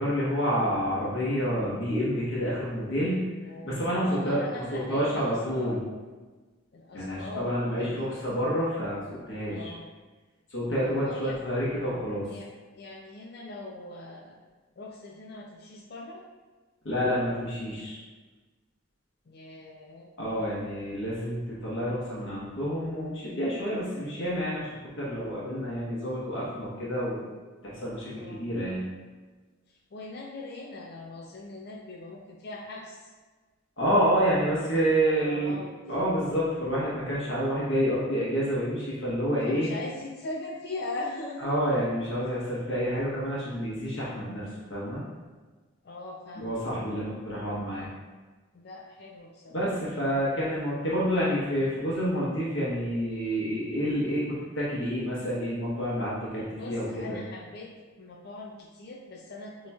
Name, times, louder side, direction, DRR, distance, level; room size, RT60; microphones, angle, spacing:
voice 1, 0.0-3.2 3.6-4.4 4.7-5.8 6.9-9.7 10.5-12.3 16.8-18.0 20.2-24.7 25.0-27.2 27.6-28.9 33.8-35.6 35.9-39.7 41.4-45.0 46.4-47.9 49.5-54.2 54.5-57.2, equal, 70° left, -7 dB, 1.1 m, -28 dB
voice 2, 3.4-5.9 6.7-8.1 9.4-9.9 10.8-11.4 12.3-14.4 14.8-16.2 19.3-20.1 28.2-28.5 29.7-33.1 35.0-35.7 39.5-41.5 45.8-46.6 48.5-49.7 56.5-59.7, left 2 dB, 50° left, -2 dB, 0.4 m, -41 dB
6.8 x 3.0 x 2.3 m, 1.3 s
head